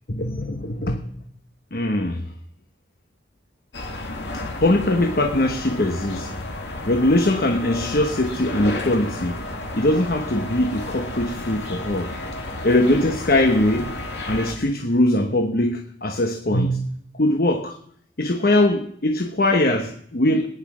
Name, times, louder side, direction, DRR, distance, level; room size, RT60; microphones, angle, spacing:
voice 1, 0.1-1.1 1.7-2.3 4.3-6.3 6.9-9.4 9.8-12.1 12.6-14.0 14.3-16.9 17.1-17.8 18.2-20.5, left 1 dB, 55° left, 1.1 m, -21 dB
sound 1, 3.7-14.5, left 2 dB, 80° left, 2.2 m, -32 dB
19.0 x 10.0 x 6.1 m
head